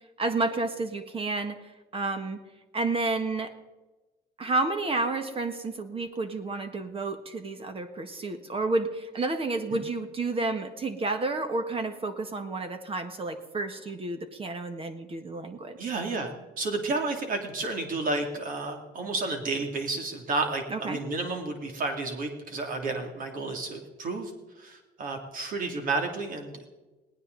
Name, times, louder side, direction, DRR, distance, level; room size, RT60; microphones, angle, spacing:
voice 1, 0.2-2.4 2.7-3.6 4.4-15.9 20.7-21.0, right 3 dB, 35° right, 8 dB, 1.6 m, -30 dB
voice 2, 15.8-24.3 24.6-26.6, right 3 dB, 55° right, 3 dB, 2.9 m, -31 dB
19.0 x 18.0 x 4.1 m, 1.1 s
cardioid pair, 110°, 17 cm